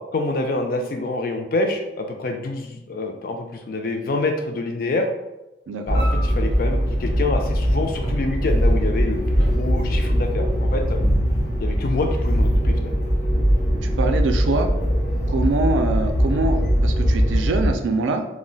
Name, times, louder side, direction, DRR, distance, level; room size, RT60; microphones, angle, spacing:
voice 1, 0.1-5.1 5.9-11.0 11.6-13.0, left 2 dB, 50° left, 4 dB, 0.3 m, -26 dB
voice 2, 5.7-6.1 14.0-14.7 15.3-18.3, right 3 dB, 90° right, 5 dB, 0.3 m, -24 dB
sound 1, 5.9-17.7, equal, 80° left, 0.7 m, -21 dB
Keyboard (musical), 8.0-11.0, right 1 dB, 25° right, 0.5 m, -44 dB
2.3 x 2.1 x 3.8 m, 0.97 s
head